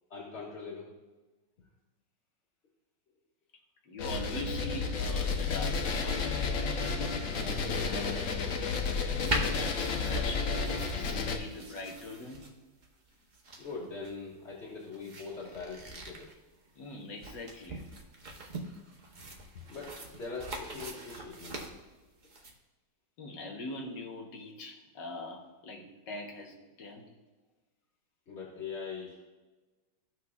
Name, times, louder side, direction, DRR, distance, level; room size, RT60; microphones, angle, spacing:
voice 1, 0.1-0.9 7.3-8.7 13.6-16.3 19.5-21.7 28.3-29.3, left 4 dB, 40° left, -7 dB, 1.9 m, -42 dB
voice 2, 3.9-6.2 9.2-12.5 16.8-17.9 23.2-27.0, left 2 dB, 75° left, 1 dB, 1.8 m, -42 dB
sound 1, 4.0-11.4, left 4 dB, 55° left, 1.0 m, -32 dB
sound 2, 9.3-22.5, right 2 dB, 40° right, 0.7 m, -41 dB
14.0 x 5.9 x 2.4 m, 1.2 s
omnidirectional pair, 2.0 m